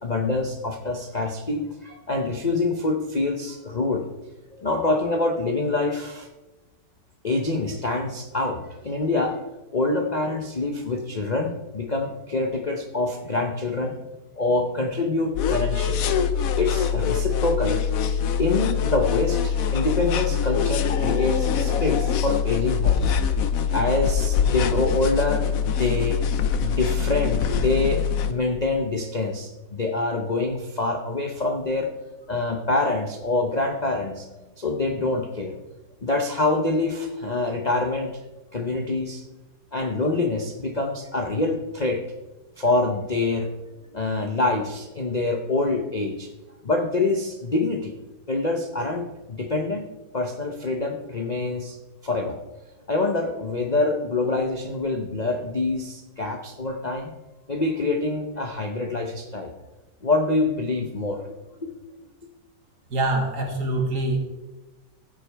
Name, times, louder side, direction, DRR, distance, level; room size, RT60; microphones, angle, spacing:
voice 1, 0.0-4.0 4.5-6.3 7.2-9.4 9.7-13.9 14.4-16.1 16.6-17.8 18.4-23.2 23.7-25.5 25.8-26.2 26.6-31.9 32.3-34.3 34.6-35.6 36.0-38.1 38.5-39.2 39.7-42.0 42.6-43.5 43.9-46.3 46.6-47.9 48.3-49.8 50.1-51.8 52.0-52.4 52.9-57.1 57.5-59.5 60.0-61.3 61.6-61.7, left 2 dB, 45° left, 3 dB, 0.5 m, -25 dB
sound 1, 15.3-28.3, left 7 dB, 65° left, 1.0 m, -24 dB
voice 2, 62.9-64.2, right 2 dB, 65° right, 1 dB, 2.4 m, -24 dB
15.0 x 8.2 x 3.4 m, 1.1 s
omnidirectional pair, 1.9 m